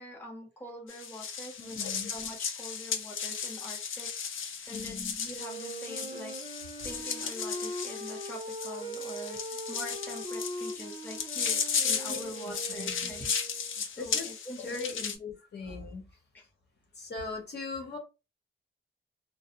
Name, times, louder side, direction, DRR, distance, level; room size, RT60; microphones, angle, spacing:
voice 1, 0.0-1.8 2.1-4.1 4.3-6.3 6.8-13.6 13.9-15.2 16.3-16.4, left 1 dB, 10° left, 0.7 m, -44 dB
sound 1, 0.9-15.2, left 6 dB, 80° left, 0.5 m, -35 dB
voice 2, 1.6-2.1 4.7-5.1 12.1-12.2 12.4-13.1 13.8-14.3 14.6-16.0 17.0-18.0, left 3 dB, 55° left, 0.8 m, -40 dB
Wind instrument woodwind instrument, 5.3-13.9, right 1 dB, 30° right, 0.6 m, -41 dB
2.4 x 2.0 x 2.8 m
wide cardioid pair, 145°, 21 cm